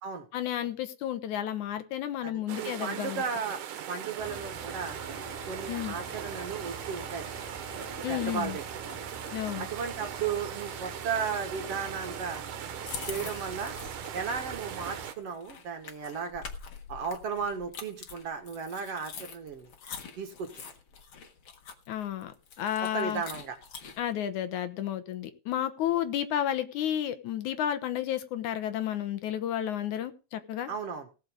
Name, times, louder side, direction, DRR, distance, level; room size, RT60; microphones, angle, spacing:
voice 1, 0.3-3.2 5.7-6.0 8.0-8.6 9.3-9.7 21.9-23.2 24.0-30.7, left 11 dB, 70° left, 10 dB, 2.4 m, -32 dB
voice 2, 2.2-3.6 3.9-5.0 5.5-7.4 8.1-8.8 9.6-12.4 13.0-13.8 14.1-16.4 16.9-19.7 20.2-20.5 22.8-23.6 30.7-31.1, right 6 dB, 55° right, 6 dB, 2.2 m, -35 dB
sound 1, 2.5-15.2, right 10 dB, 85° right, 2.8 m, -40 dB
sound 2, 4.2-15.1, right 3 dB, 5° right, 3.2 m, -45 dB
sound 3, 12.9-24.1, left 6 dB, 50° left, 2.0 m, -45 dB
17.5 x 6.7 x 5.1 m, 0.33 s
omnidirectional pair, 3.6 m